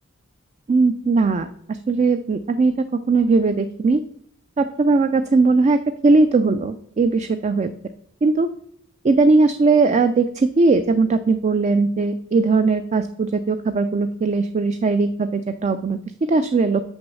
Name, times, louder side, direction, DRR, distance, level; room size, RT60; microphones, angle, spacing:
voice 1, 0.7-4.0 4.6-7.7 8.2-8.5 9.0-16.0 16.3-16.8, right 3 dB, 30° right, 10 dB, 0.3 m, -19 dB
6.4 x 6.2 x 6.1 m, 0.68 s
head